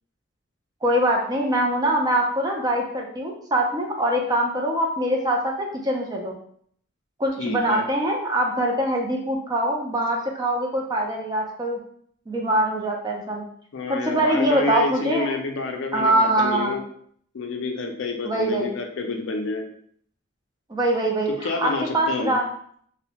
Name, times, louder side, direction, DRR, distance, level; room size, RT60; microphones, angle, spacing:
voice 1, 0.8-6.4 7.2-11.8 12.3-13.4 13.9-15.3 15.9-16.8 18.2-18.7 20.7-22.5, right 1 dB, 20° right, 0 dB, 0.4 m, -23 dB
voice 2, 7.4-7.9 13.7-16.8 17.3-19.7 21.3-22.3, left 3 dB, 65° left, 3 dB, 0.4 m, -29 dB
2.7 x 2.1 x 2.8 m, 0.62 s
head